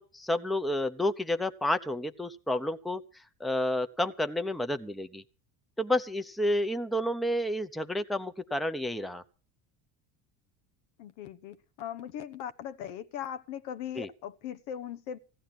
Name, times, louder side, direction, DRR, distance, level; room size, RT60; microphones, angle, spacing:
voice 1, 0.0-3.0 3.4-5.2 5.8-9.2 14.0-14.1, left 1 dB, ahead, 0.8 m, -30 dB
voice 2, 11.0-15.2, left 9 dB, 70° left, 1.2 m, -39 dB
16.0 x 10.0 x 6.2 m
supercardioid pair, 90°, 47 cm